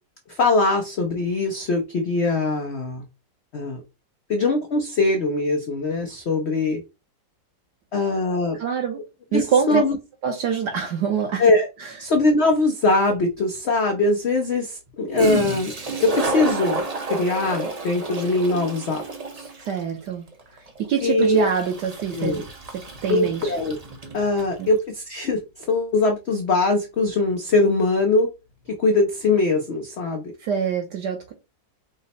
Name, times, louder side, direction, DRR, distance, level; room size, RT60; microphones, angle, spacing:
voice 1, 0.3-3.0 3.5-3.8 4.3-6.8 7.9-8.6 9.3-10.0 11.4-11.7 12.0-15.7 16.2-16.8 17.1-19.0 19.3-19.5 21.0-21.5 22.2-22.4 23.1-23.8 24.1-25.4 25.7-28.3 28.8-30.2, left 2 dB, 85° left, 0.6 m, -21 dB
voice 2, 8.6-9.0 9.3-9.8 10.2-11.5 11.8-12.0 19.6-20.2 20.8-22.4 23.0-23.6 24.6-24.7 30.4-31.3, right 7 dB, 70° right, 1.3 m, -25 dB
Toilet flush, 13.1-13.2 14.9-15.0 15.1-24.5, right 3 dB, 40° right, 0.5 m, -30 dB
5.0 x 2.1 x 4.1 m
omnidirectional pair, 2.0 m